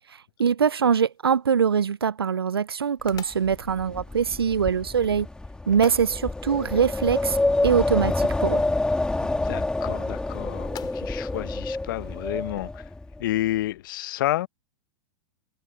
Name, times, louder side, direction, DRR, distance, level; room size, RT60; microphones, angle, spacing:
voice 1, 0.4-5.3 5.7-7.4 7.6-8.6, right 7 dB, 85° right, 0.6 m, -23 dB
Magnet on refrigerator, 0.9-12.6, left 13 dB, 35° left, 6.6 m, -51 dB
Wind, 3.1-13.2, left 2 dB, 5° left, 1.9 m, -28 dB
voice 2, 9.2-12.9 13.2-14.5, left 15 dB, 65° left, 1.0 m, -30 dB
hypercardioid pair, 100°, 12 cm